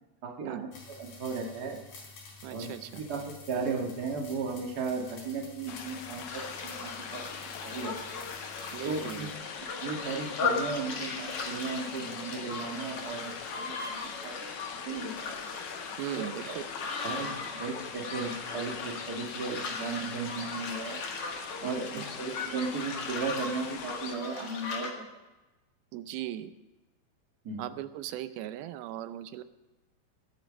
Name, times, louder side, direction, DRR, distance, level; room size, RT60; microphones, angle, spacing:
voice 1, 0.2-0.7 1.0-1.8 2.5-2.7 3.0-8.0 8.8-9.3 9.6-14.5 14.8-15.3 16.2-16.6 17.0-21.0 21.6-25.0 27.4-27.6, right 4 dB, 35° right, 1 dB, 1.8 m, -36 dB
sound 1, 0.7-9.4, left 3 dB, 85° left, 5.8 m, -50 dB
voice 2, 2.4-3.0 8.7-9.3 16.0-16.6 21.6-22.1 25.9-26.5 27.6-29.4, right 12 dB, 90° right, 12 dB, 2.6 m, -38 dB
sound 2, 5.7-24.2, left 7 dB, 65° left, 1.8 m, -43 dB
sound 3, 6.3-24.9, left 4 dB, 45° left, 2.6 m, -38 dB
20.0 x 8.6 x 5.2 m, 1.1 s
omnidirectional pair, 4.3 m